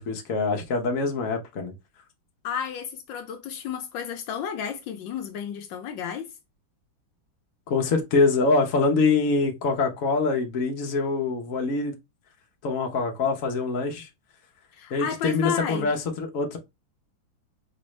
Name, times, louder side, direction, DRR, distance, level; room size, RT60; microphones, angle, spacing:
voice 1, 0.0-1.7 7.7-11.9 12.6-14.1 14.9-16.6, left 3 dB, 50° left, 1.2 m, -24 dB
voice 2, 2.4-6.3 14.7-15.9, left 8 dB, 80° left, 1.3 m, -32 dB
5.1 x 2.6 x 3.1 m
omnidirectional pair, 2.1 m